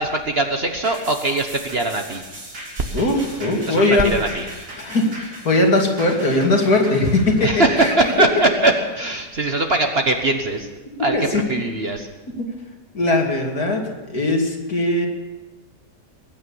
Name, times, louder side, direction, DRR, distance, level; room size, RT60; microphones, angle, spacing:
voice 1, 0.0-2.2 3.6-4.5 7.4-10.7 11.0-12.1, right 2 dB, 40° right, 4 dB, 1.3 m, -21 dB
sound 1, 0.8-9.5 10.0-10.1, right 1 dB, 70° right, 4.2 m, -38 dB
voice 2, 2.9-4.2 4.8-7.9 11.1-11.4 12.9-13.8 14.1-15.1, left 2 dB, 65° left, 1 dB, 2.9 m, -19 dB
21.0 x 9.6 x 7.2 m, 1.2 s
omnidirectional pair, 1.8 m